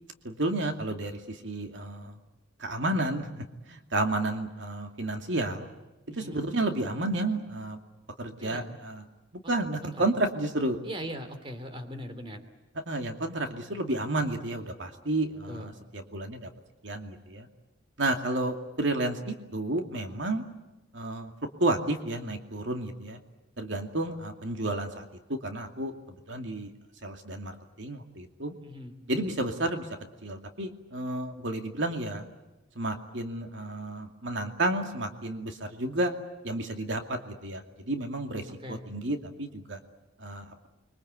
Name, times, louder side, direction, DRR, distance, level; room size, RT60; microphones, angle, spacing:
voice 1, 0.2-2.1 2.6-5.7 6.1-7.8 8.2-9.0 9.5-10.8 12.9-16.5 16.8-17.5 18.0-20.4 20.9-21.3 21.6-23.2 23.6-26.7 27.0-28.5 29.1-29.9 30.2-32.3 32.8-36.1 36.4-39.8 40.2-40.7, right 2 dB, 70° right, 5 dB, 2.5 m, -31 dB
voice 2, 6.1-6.4 8.4-8.8 9.4-9.6 10.0-10.1 10.8-12.4 15.5-15.7 28.6-28.9 38.2-38.8, equal, 25° right, 8 dB, 3.0 m, -40 dB
30.0 x 23.5 x 8.2 m, 1.0 s
head